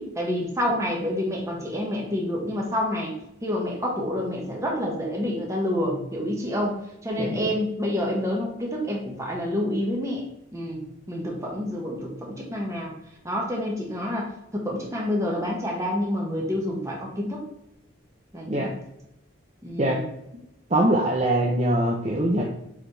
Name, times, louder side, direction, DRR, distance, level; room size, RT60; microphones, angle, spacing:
voice 1, 0.0-3.1 3.4-6.7 7.0-10.2 10.5-12.9 13.2-17.4 18.3-18.7 19.6-20.0, left 1 dB, 15° right, -2 dB, 1.5 m, -28 dB
voice 2, 7.2-7.5 18.5-18.7 19.8-20.0 20.7-22.4, right 1 dB, 35° right, -1 dB, 0.7 m, -23 dB
7.2 x 4.4 x 3.3 m, 0.85 s
head